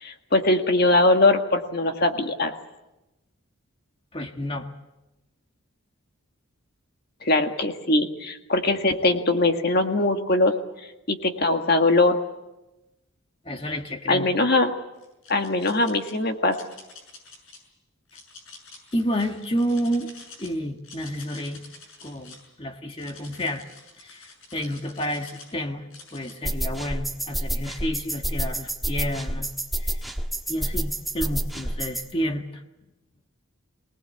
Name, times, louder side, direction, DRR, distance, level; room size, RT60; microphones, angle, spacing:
voice 1, 0.0-2.5 7.2-10.6 11.1-12.2 14.1-14.7 15.3-16.6, left 2 dB, 50° left, 5 dB, 1.8 m, -21 dB
voice 2, 4.1-4.7 13.4-14.3 18.9-20.1 20.4-21.6 22.0-23.7 24.0-25.9 26.1-29.5 29.8-30.0 30.5-32.6, equal, 25° left, 5 dB, 1.6 m, -30 dB
sound 1, 15.0-16.1 16.5-17.6 18.1-20.5 20.8-22.5 22.9-25.5 25.9-26.3, left 4 dB, 70° left, 6.8 m, -47 dB
sound 2, 26.4-32.1, right 1 dB, ahead, 1.3 m, -29 dB
24.0 x 19.0 x 8.3 m, 0.99 s
head